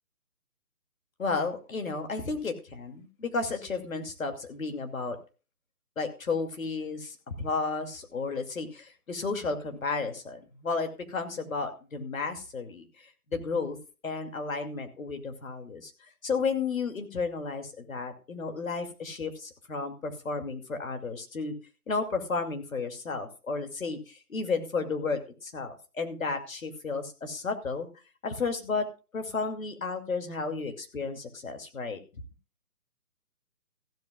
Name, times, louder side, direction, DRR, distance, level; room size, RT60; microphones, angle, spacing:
voice 1, 1.2-5.2 6.0-12.9 13.3-13.8 14.0-15.9 16.2-21.5 21.9-27.9 28.2-28.9 29.1-32.0, left 4 dB, 60° left, 5 dB, 2.6 m, -33 dB
15.0 x 13.0 x 2.4 m, 0.33 s
figure-of-eight pair, 160°, 46 cm